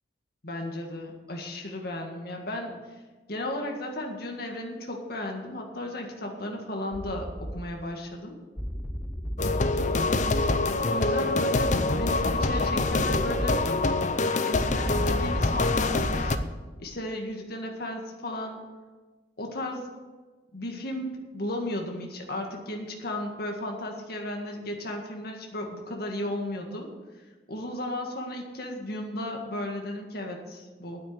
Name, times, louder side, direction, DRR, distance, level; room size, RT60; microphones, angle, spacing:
voice 1, 0.4-2.7 3.3-8.3 10.9-13.7 14.5-16.4 16.8-18.6 19.4-19.9 20.5-26.9 27.5-31.0, left 1 dB, 60° left, 2 dB, 1.8 m, -34 dB
sound 1, 6.9-7.6 8.6-10.7 11.6-13.6 14.5-16.5, equal, 10° left, 0.8 m, -32 dB
sound 2, 9.4-16.4, left 3 dB, 45° left, 0.7 m, -25 dB
9.7 x 9.3 x 8.0 m, 1.3 s
head